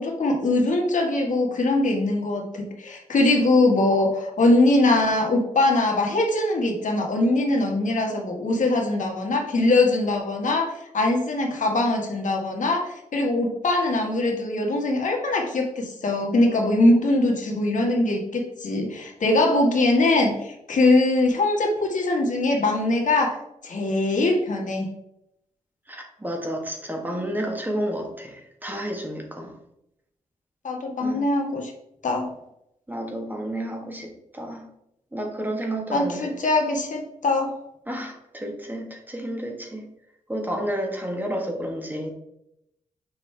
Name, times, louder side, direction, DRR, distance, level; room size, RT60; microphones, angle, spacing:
voice 1, 0.0-24.9 30.6-31.7 32.0-32.3 35.9-37.5, left 2 dB, 65° left, 1 dB, 1.7 m, -22 dB
voice 2, 25.9-29.6 31.0-31.2 32.9-34.7 35.1-36.3 37.9-39.9 40.3-42.1, right 1 dB, 15° right, 2 dB, 1.4 m, -31 dB
7.7 x 5.6 x 3.4 m, 0.81 s
wide cardioid pair, 95°, 14 cm